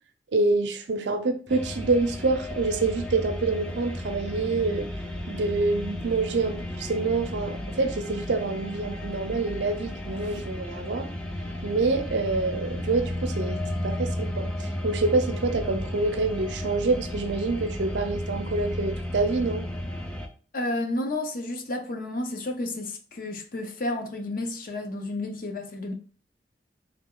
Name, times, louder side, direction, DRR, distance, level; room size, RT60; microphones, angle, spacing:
voice 1, 0.3-4.9 5.3-11.1 11.6-19.7, right 3 dB, 85° right, 0.5 m, -27 dB
sound 1, 1.5-20.3, left 1 dB, 5° left, 0.3 m, -33 dB
voice 2, 20.5-25.9, left 2 dB, 50° left, 0.6 m, -31 dB
3.4 x 2.3 x 3.6 m
head